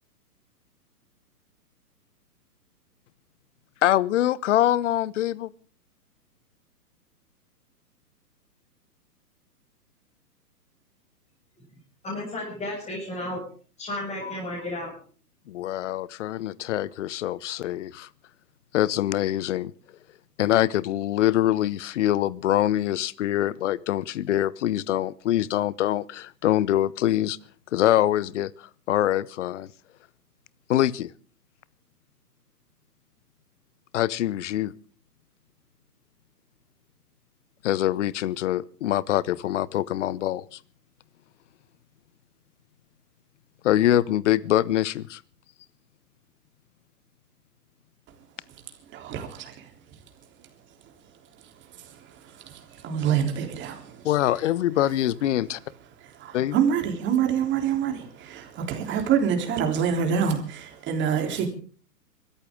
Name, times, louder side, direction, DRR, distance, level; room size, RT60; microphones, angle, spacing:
voice 1, 3.8-5.5 15.5-18.1 18.7-19.7 20.4-27.4 27.7-29.7 30.7-31.1 33.9-34.7 37.6-40.6 43.6-45.2 54.0-55.6 56.3-56.5, left 13 dB, 50° left, 22 dB, 0.9 m, -24 dB
voice 2, 12.0-13.4 13.8-14.9, left 1 dB, 15° left, -6 dB, 7.1 m, -33 dB
voice 3, 48.9-49.7 51.7-54.1 56.0-61.5, right 7 dB, 25° right, 4 dB, 3.5 m, -27 dB
25.0 x 14.0 x 3.7 m, 0.42 s
hypercardioid pair, 130°, 48 cm